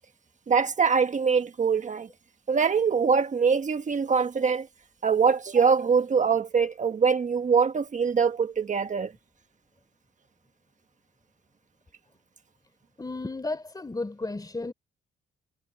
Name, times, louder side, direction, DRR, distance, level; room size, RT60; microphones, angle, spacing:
voice 1, 0.5-2.1 2.5-4.7 5.0-9.1, right 6 dB, 40° right, 1.3 m, -23 dB
voice 2, 13.0-14.7, left 2 dB, 20° left, 3.8 m, -33 dB
cardioid pair, 90°, 20 cm